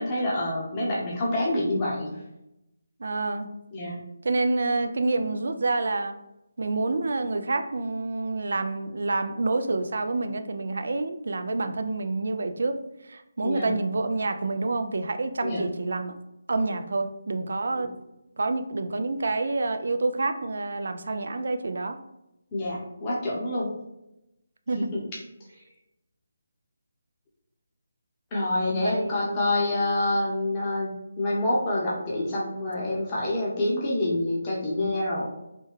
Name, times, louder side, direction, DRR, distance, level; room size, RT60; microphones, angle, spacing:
voice 1, 0.0-2.2 3.7-4.0 13.4-13.7 15.4-15.6 17.7-17.9 22.5-23.7 24.8-25.0 28.3-30.9 31.2-35.3, left 1 dB, 25° left, -6 dB, 0.8 m, -27 dB
voice 2, 3.0-3.5 4.2-6.1 6.6-12.8 13.1-16.1 16.5-17.9 18.4-22.0 24.7-24.9 28.7-29.4, right 3 dB, 65° right, 8 dB, 0.3 m, -28 dB
3.3 x 2.1 x 3.1 m, 0.89 s
figure-of-eight pair, 155°, 0 cm